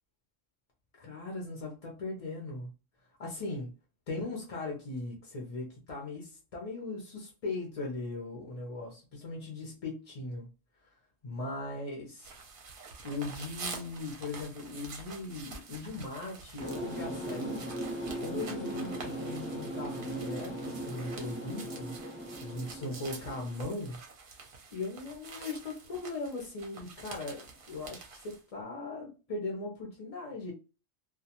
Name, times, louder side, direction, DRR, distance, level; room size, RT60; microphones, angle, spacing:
voice 1, 1.0-2.7 3.2-3.7 4.1-10.5 11.2-12.3 13.0-17.6 18.2-21.9 22.4-24.0 24.7-30.5, left 2 dB, 45° left, 0.5 m, -39 dB
sound 1, 12.2-28.4, right 4 dB, 55° right, 0.7 m, -47 dB
sound 2, 16.6-23.8, right 1 dB, 15° right, 0.4 m, -38 dB
2.2 x 2.2 x 2.8 m
omnidirectional pair, 1.3 m